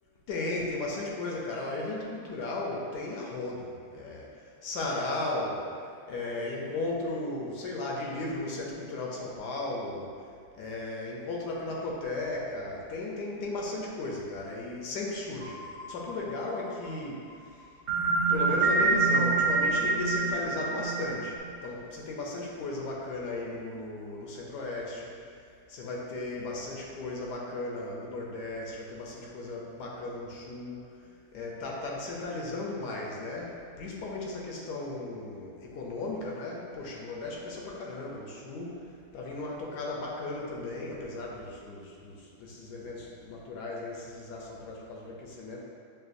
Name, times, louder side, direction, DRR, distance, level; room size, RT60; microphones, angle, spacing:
voice 1, 0.3-4.3 4.6-5.6 6.1-10.1 10.6-15.6 15.9-17.2 18.3-25.1 25.7-30.8 31.3-38.8 39.1-45.6, left 2 dB, 75° left, -2 dB, 1.1 m, -35 dB
sound 1, 15.4-16.7 17.9-21.4, right 4 dB, 55° right, 0.3 m, -27 dB
6.5 x 2.2 x 2.5 m, 2.2 s
omnidirectional pair, 1.9 m